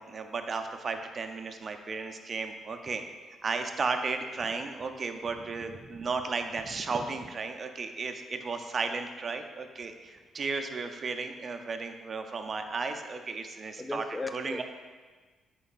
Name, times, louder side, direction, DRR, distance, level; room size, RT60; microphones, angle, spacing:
voice 1, 0.0-3.0 3.4-14.0 14.3-14.6, right 4 dB, 40° right, 6 dB, 0.5 m, -34 dB
voice 2, 13.8-14.6, left 2 dB, 15° left, 8 dB, 0.3 m, -36 dB
8.7 x 4.5 x 2.4 m, 1.4 s
cardioid pair, 90°, 0 cm